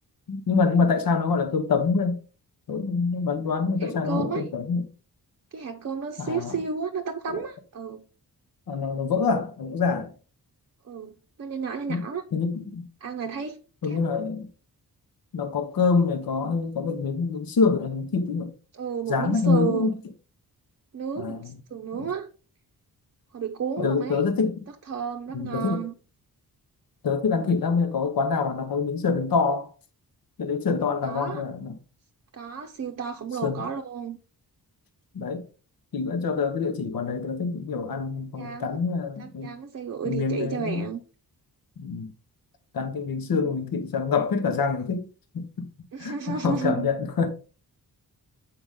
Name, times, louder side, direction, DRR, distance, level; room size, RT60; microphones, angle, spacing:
voice 1, 0.3-2.2 2.7-4.8 6.2-6.5 7.3-7.4 8.7-10.1 11.9-12.0 12.3-12.8 13.8-14.5 15.3-18.5 19.1-19.9 21.2-21.5 21.9-22.1 23.8-24.6 25.3-25.8 27.0-29.7 30.4-31.7 33.4-33.6 35.1-35.4 35.9-39.5 40.0-40.8 41.8-42.1 42.7-45.1 45.3-45.6 46.0-47.3, left 4 dB, 65° left, 1.2 m, -25 dB
voice 2, 3.8-4.5 5.5-8.0 10.8-12.2 13.0-13.6 13.8-14.0 18.7-20.0 20.9-22.3 23.3-24.2 24.9-25.9 31.0-31.4 32.3-34.2 38.4-38.8 39.2-41.0 43.2-43.5 45.9-46.9, right 6 dB, 40° right, 0.7 m, -32 dB
7.8 x 4.9 x 3.7 m
wide cardioid pair, 145°, 38 cm